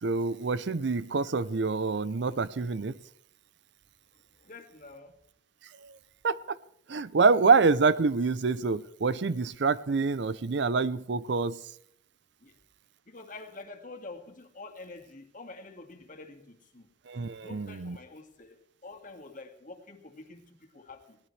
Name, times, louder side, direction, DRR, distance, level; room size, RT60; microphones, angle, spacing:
voice 1, 0.0-3.0 5.8-6.0 6.2-6.6 6.9-11.6 17.1-18.0, right 4 dB, 65° right, 17 dB, 0.6 m, -26 dB
voice 2, 4.4-5.2 12.4-12.5 13.1-16.9 17.4-18.6 18.8-21.2, left 3 dB, 45° left, 4 dB, 2.1 m, -47 dB
22.0 x 17.5 x 3.3 m, 0.66 s
head